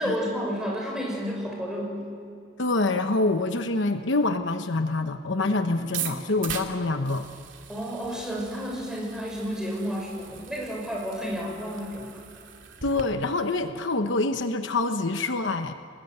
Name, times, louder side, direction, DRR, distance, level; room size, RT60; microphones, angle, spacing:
voice 1, 0.0-2.1 5.6-6.1 7.7-12.2, equal, 5° right, -2 dB, 6.5 m, -31 dB
voice 2, 2.6-7.3 12.8-15.8, left 2 dB, 65° left, 7 dB, 1.0 m, -26 dB
sound 1, 5.8-13.0, right 8 dB, 70° right, 2.5 m, -40 dB
29.5 x 19.5 x 8.1 m, 2.6 s
head